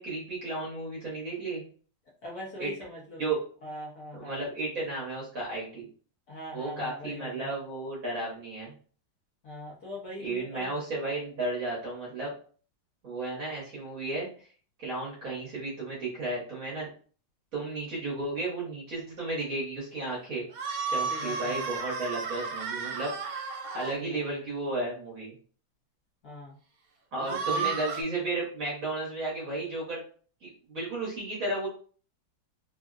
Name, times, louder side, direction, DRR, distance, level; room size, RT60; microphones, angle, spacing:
voice 1, 0.0-1.6 2.6-2.7 3.2-3.4 4.2-5.9 6.5-8.7 10.2-12.3 13.0-14.3 14.8-16.9 17.5-20.4 20.9-25.3 27.1-30.0 30.4-31.7, right 2 dB, 50° right, -5 dB, 1.2 m, -33 dB
voice 2, 2.2-3.2 3.6-4.4 6.3-7.5 9.4-10.7 21.1-21.7 23.9-24.5 26.2-26.6 27.2-27.7, left 1 dB, 60° left, -5 dB, 1.1 m, -41 dB
sound 1, 20.5-23.9 27.2-28.0, right 5 dB, 70° right, 0.8 m, -33 dB
3.6 x 2.1 x 2.4 m, 0.42 s
omnidirectional pair, 2.2 m